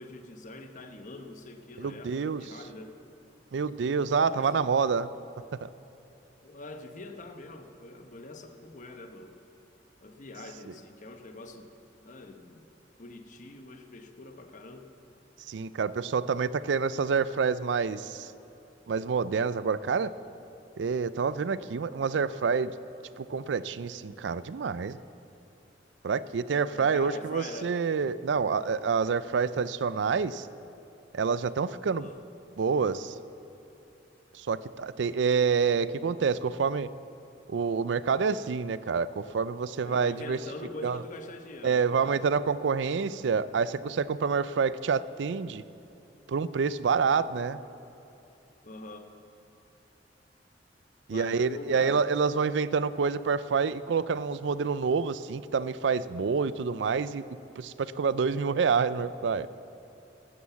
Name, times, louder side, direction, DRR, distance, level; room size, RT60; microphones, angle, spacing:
voice 1, 0.0-3.0 4.3-4.7 6.4-9.3 10.0-11.7 12.0-12.7 13.0-14.9 26.7-27.8 32.0-32.2 39.8-42.2 48.6-49.1 51.1-52.1, left 2 dB, 45° left, 6 dB, 1.0 m, -44 dB
voice 2, 1.8-2.4 3.5-5.1 5.6-5.7 15.5-18.3 18.9-20.1 20.8-22.7 23.2-25.0 26.0-30.5 31.1-32.1 32.6-33.2 34.3-36.9 37.5-40.4 40.8-41.0 41.6-45.6 46.3-47.6 51.1-57.2 57.6-59.5, right 5 dB, 75° right, 16 dB, 0.4 m, -27 dB
13.0 x 12.5 x 7.1 m, 2.7 s
head